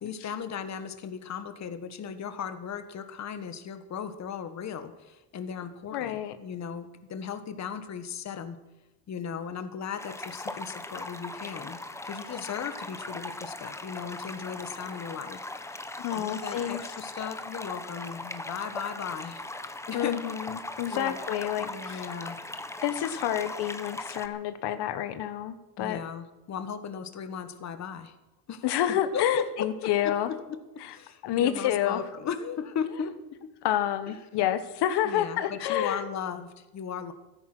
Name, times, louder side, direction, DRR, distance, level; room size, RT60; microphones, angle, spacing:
voice 1, 0.0-8.6 9.1-19.5 19.9-20.2 20.9-21.2 21.6-22.4 25.8-28.1 28.5-33.5 34.1-34.2 35.0-37.1, left 7 dB, 45° left, 10 dB, 1.5 m, -37 dB
voice 2, 5.9-6.4 16.0-16.8 19.9-22.1 22.8-26.0 28.6-30.3 30.8-30.9 31.2-32.0 33.6-36.0, left 11 dB, 85° left, 11 dB, 1.3 m, -29 dB
sound 1, 10.0-24.3, left 2 dB, 5° left, 0.9 m, -39 dB
15.0 x 14.0 x 6.1 m, 1.0 s
cardioid pair, 155°, 40 cm